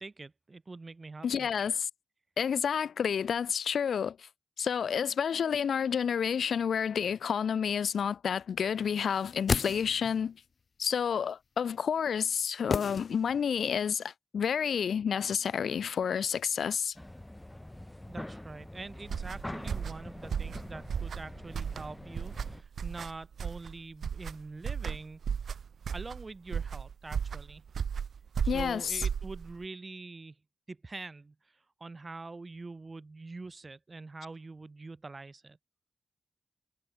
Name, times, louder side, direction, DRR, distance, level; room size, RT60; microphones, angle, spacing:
voice 1, 0.0-1.5 18.1-25.2 25.9-27.6 28.4-30.4 30.7-31.3 31.8-35.6, right 3 dB, 35° right, 4.0 m, -44 dB
voice 2, 1.2-1.9 2.4-4.3 4.6-10.4 10.8-16.9 28.5-29.0, left 7 dB, 80° left, 0.4 m, -30 dB
sound 1, 9.1-10.3 12.7-13.6 13.9-14.0, left 5 dB, 55° left, 1.0 m, -33 dB
sound 2, 17.0-22.6, left 1 dB, 10° left, 1.1 m, -45 dB
sound 3, 19.0-29.6, right 7 dB, 75° right, 1.6 m, -35 dB
cardioid pair, 80°, 0 cm